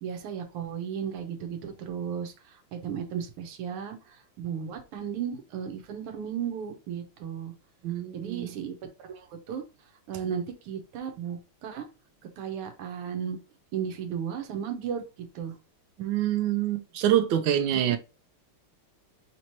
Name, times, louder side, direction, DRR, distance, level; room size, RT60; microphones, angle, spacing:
voice 1, 0.0-7.5 8.1-8.7 9.0-9.6 10.1-11.8 12.4-13.4 13.7-15.0 15.3-15.5 17.9-18.0, right 8 dB, 90° right, 1.8 m, -35 dB
voice 2, 7.8-8.5 16.0-18.0, right 11 dB, 70° right, 1.3 m, -26 dB
5.1 x 3.0 x 2.8 m
omnidirectional pair, 2.4 m